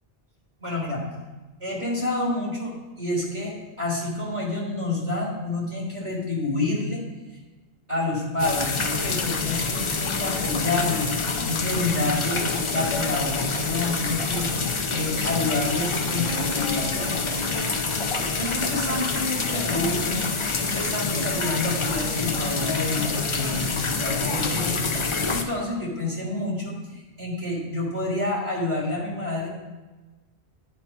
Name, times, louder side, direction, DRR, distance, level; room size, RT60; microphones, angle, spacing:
voice 1, 0.6-1.0 1.6-7.0 7.9-17.7 18.1-20.2 20.5-29.5, left 2 dB, 30° right, -3 dB, 1.6 m, -29 dB
sound 1, 8.4-25.4, left 4 dB, 40° left, 0.5 m, -26 dB
9.0 x 4.3 x 5.1 m, 1.2 s
omnidirectional pair, 1.1 m